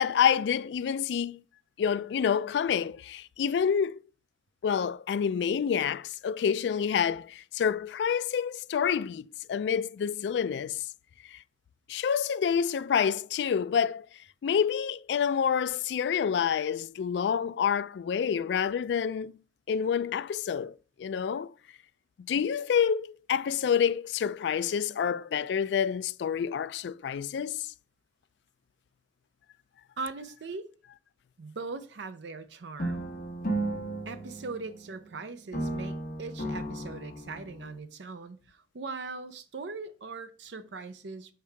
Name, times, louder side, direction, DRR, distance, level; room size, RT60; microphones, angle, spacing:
voice 1, 0.0-1.4 1.8-4.0 4.6-10.8 11.3-11.4 11.9-14.0 14.4-19.3 19.7-21.5 22.3-27.7, left 7 dB, 75° left, 0.3 m, -28 dB
voice 2, 30.0-30.7 31.4-33.2 34.1-41.3, right 3 dB, 85° right, 0.6 m, -40 dB
sound 1, 32.8-35.2 35.5-37.8, right 1 dB, 55° left, 1.0 m, -34 dB
6.7 x 4.6 x 3.3 m
head